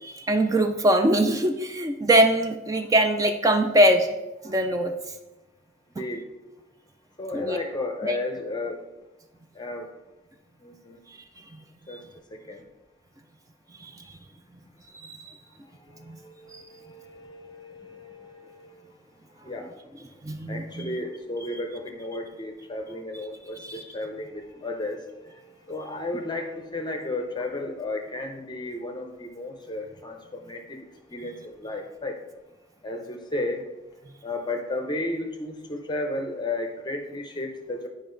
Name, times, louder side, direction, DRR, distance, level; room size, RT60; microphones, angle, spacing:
voice 1, 0.0-4.1 4.4-4.9 7.3-7.6 8.0-8.2 11.9-12.0 13.8-14.0 15.0-15.3 16.1-16.2 16.5-16.6 20.2-20.9 23.6-23.8, right 1 dB, 15° right, 6 dB, 0.4 m, -22 dB
voice 2, 7.2-8.8 9.5-9.9 10.6-11.0 11.9-12.0 12.3-12.6 15.8-18.9 19.4-19.7 20.5-32.2 32.8-33.7 34.2-37.9, left 2 dB, 20° left, 4 dB, 0.6 m, -34 dB
9.9 x 5.0 x 3.8 m, 1.1 s
head